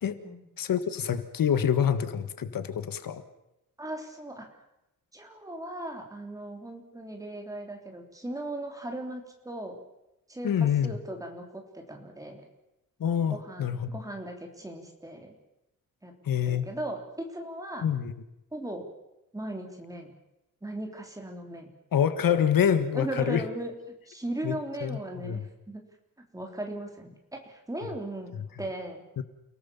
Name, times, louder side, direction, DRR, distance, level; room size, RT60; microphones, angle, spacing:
voice 1, 0.6-3.2 10.4-10.9 13.0-14.0 16.2-16.7 17.8-18.1 21.9-23.4 24.4-24.5 24.8-25.4 29.2-29.3, left 8 dB, 75° left, 11 dB, 1.6 m, -26 dB
voice 2, 3.8-4.5 5.1-9.8 10.3-12.5 13.3-15.4 16.0-16.1 16.5-17.9 18.5-18.9 19.3-20.1 20.6-21.7 22.9-23.7 24.1-25.8 26.3-28.3 28.6-29.0, right 1 dB, 10° right, 2 dB, 3.6 m, -38 dB
29.0 x 18.5 x 7.2 m, 0.91 s
wide cardioid pair, 175°, 34 cm